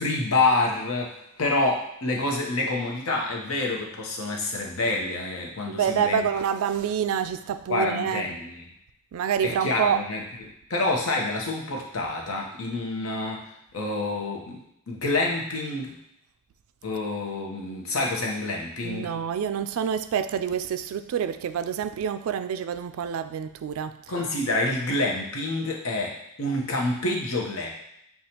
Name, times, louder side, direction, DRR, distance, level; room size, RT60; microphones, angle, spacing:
voice 1, 0.0-6.2 7.7-8.6 9.4-13.5 13.7-15.9 16.8-19.1 24.1-27.7, left 2 dB, 70° left, -1 dB, 0.9 m, -27 dB
voice 2, 5.8-8.2 9.1-10.0 18.8-23.9, right 8 dB, 75° right, 11 dB, 0.3 m, -27 dB
6.7 x 2.3 x 2.9 m, 0.79 s
head